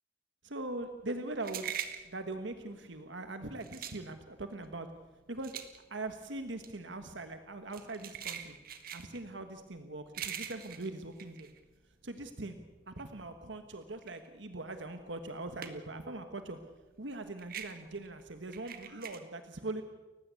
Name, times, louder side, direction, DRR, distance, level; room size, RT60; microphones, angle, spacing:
voice 1, 0.4-1.7 2.0-4.9 5.3-5.6 5.9-8.6 8.9-11.5 12.0-12.6 12.9-16.6 17.0-19.8, right 2 dB, 80° right, 7 dB, 1.5 m, -41 dB
sound 1, 0.7-12.3 12.6-16.1 16.4-19.2, right 9 dB, 50° right, 1.9 m, -44 dB
30.0 x 15.5 x 8.3 m, 1.2 s
head